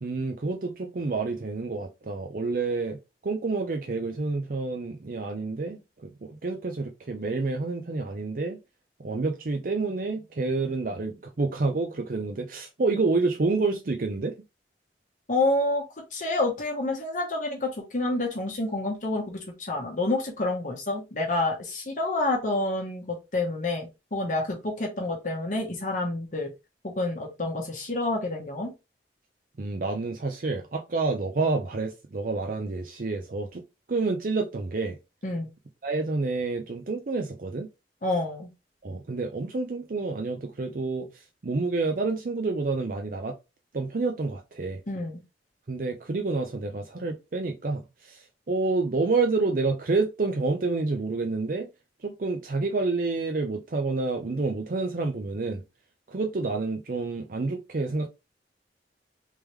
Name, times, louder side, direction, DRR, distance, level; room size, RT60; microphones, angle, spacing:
voice 1, 0.0-3.0 3.2-8.6 9.0-14.3 29.6-33.6 33.9-35.0 35.8-37.7 38.8-43.3 43.7-44.8 45.7-51.7 52.0-55.6 56.1-58.1, right 3 dB, 50° right, 0.5 m, -28 dB
voice 2, 15.3-15.8 16.1-26.5 26.8-28.7 35.2-35.5 38.0-38.5 44.9-45.2, left 2 dB, 45° left, 1.1 m, -28 dB
3.5 x 3.2 x 3.2 m
head